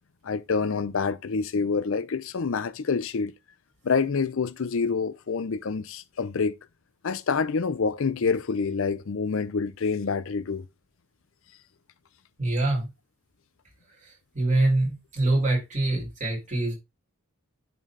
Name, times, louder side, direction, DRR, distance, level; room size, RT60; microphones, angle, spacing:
voice 1, 0.2-3.3 3.8-6.5 7.0-10.7, left 5 dB, 60° left, 0.5 m, -27 dB
voice 2, 12.4-12.9 14.3-16.7, right 2 dB, 35° right, 4.0 m, -24 dB
11.0 x 4.0 x 3.2 m
head